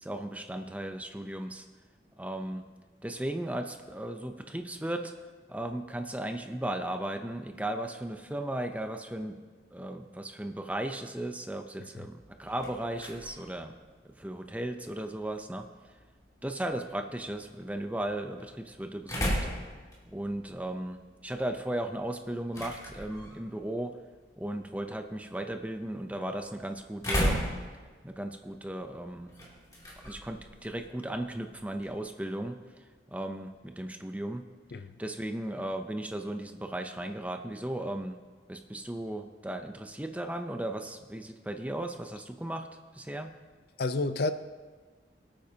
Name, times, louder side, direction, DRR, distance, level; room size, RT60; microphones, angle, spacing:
voice 1, 0.0-1.7 2.2-2.6 3.0-5.1 5.5-9.4 9.7-13.7 14.0-15.7 16.4-19.5 20.1-24.0 24.4-27.4 28.0-29.3 30.0-34.4 35.0-38.2 38.5-42.7 42.9-43.3, right 1 dB, 10° right, 6 dB, 0.6 m, -36 dB
sound 1, 12.2-32.1, equal, 20° left, 2.8 m, -39 dB
voice 2, 43.8-44.3, left 2 dB, 60° left, 10 dB, 0.5 m, -29 dB
23.5 x 8.9 x 2.8 m, 1.4 s
head